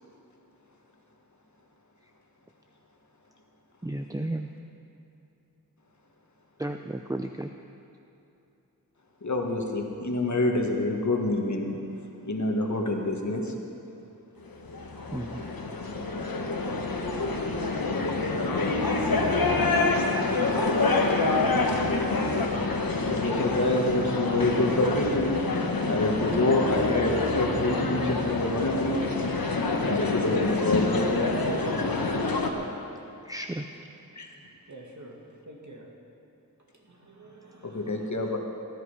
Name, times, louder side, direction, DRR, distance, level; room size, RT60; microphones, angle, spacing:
voice 1, 3.8-4.5 6.6-7.5 15.1-15.4 33.3-33.6, right 1 dB, 10° right, 6 dB, 0.4 m, -33 dB
voice 2, 9.2-11.8 12.2-13.5 23.1-25.5 25.9-29.0 29.8-31.1 34.1-34.3 37.6-38.4, left 2 dB, 55° left, 2 dB, 1.6 m, -27 dB
sound 1, 14.5-32.5, left 3 dB, 90° left, 1.2 m, -27 dB
voice 3, 34.7-35.2 35.5-35.9 36.8-38.4, right 1 dB, 55° right, -1 dB, 2.2 m, -48 dB
18.5 x 11.0 x 4.9 m, 2.9 s
wide cardioid pair, 80°, 34 cm